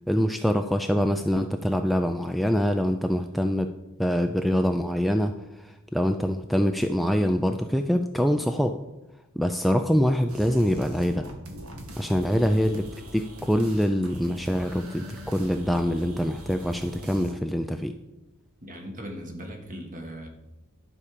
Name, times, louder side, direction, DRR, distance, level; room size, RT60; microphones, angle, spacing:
voice 1, 0.1-3.7 4.0-8.8 9.4-11.3 12.0-12.9 13.1-17.9, equal, ahead, 7 dB, 0.3 m, -24 dB
sound 1, 10.3-17.3, equal, 80° right, 1.6 m, -42 dB
voice 2, 18.6-20.3, equal, 40° right, 3 dB, 1.6 m, -39 dB
11.5 x 4.9 x 6.7 m, 0.98 s
head